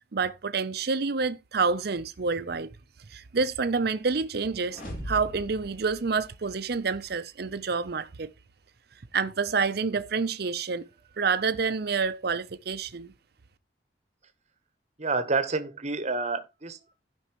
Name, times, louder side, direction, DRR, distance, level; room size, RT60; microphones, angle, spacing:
voice 1, 0.1-2.7 3.1-8.3 9.1-10.9 11.2-13.1, right 4 dB, 60° right, 0.7 m, -28 dB
sound 1, 4.7-6.8, equal, 50° left, 3.0 m, -40 dB
voice 2, 15.0-16.9, right 3 dB, 40° right, 1.0 m, -29 dB
15.5 x 5.4 x 3.1 m
head